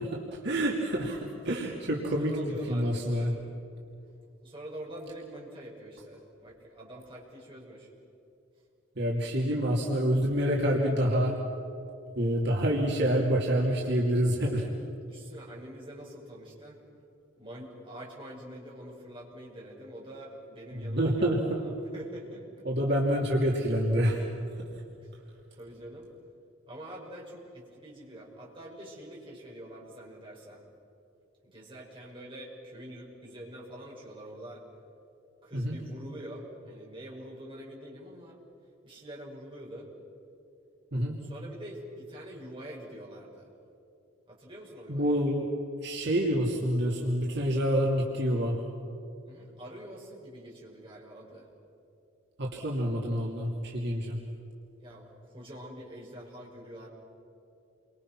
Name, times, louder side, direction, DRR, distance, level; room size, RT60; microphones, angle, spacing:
voice 1, 0.0-2.3 2.7-3.3 9.0-11.3 12.1-14.7 20.8-21.6 22.6-24.3 35.5-35.8 40.9-41.2 44.9-45.5 45.8-48.6 52.4-54.2, equal, 60° right, -2 dB, 2.9 m, -27 dB
voice 2, 2.2-3.3 4.4-7.9 15.0-16.8 17.3-22.7 25.0-25.1 25.5-26.1 26.7-30.6 31.4-34.6 35.4-38.4 38.8-39.9 41.2-43.5 44.3-45.2 49.2-51.5 54.8-56.9, right 1 dB, 25° right, -4 dB, 6.0 m, -45 dB
30.0 x 24.5 x 6.2 m, 2.7 s
head